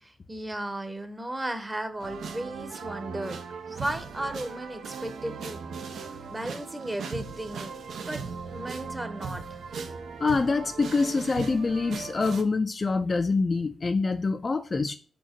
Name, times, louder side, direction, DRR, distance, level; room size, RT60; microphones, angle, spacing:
voice 1, 0.0-3.4 3.7-5.6 6.0-7.7 8.0-9.6, right 1 dB, 15° right, 0.8 m, -35 dB
sound 1, 2.0-12.4, right 5 dB, 80° right, 0.7 m, -38 dB
voice 2, 10.2-15.0, left 4 dB, 30° left, 0.4 m, -25 dB
4.9 x 4.5 x 4.4 m
wide cardioid pair, 115°, 0 cm